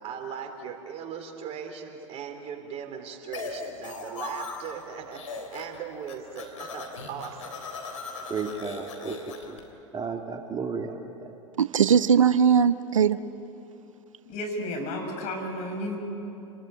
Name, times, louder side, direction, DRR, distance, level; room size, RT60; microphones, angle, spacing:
voice 1, 0.0-7.6, right 7 dB, 40° right, 5 dB, 3.6 m, -38 dB
sound 1, 3.3-4.8 5.1-5.8 6.0-9.6, left 4 dB, 75° left, 3.8 m, -38 dB
voice 2, 8.3-9.2 9.5-9.6 9.9-11.0, right 5 dB, 25° right, 4 dB, 2.0 m, -33 dB
voice 3, 11.6-13.2, right 7 dB, 80° right, 15 dB, 0.7 m, -20 dB
voice 4, 14.3-16.0, left 1 dB, 45° left, 2 dB, 6.8 m, -32 dB
29.0 x 21.0 x 9.2 m, 2.9 s
figure-of-eight pair, 85°, 16 cm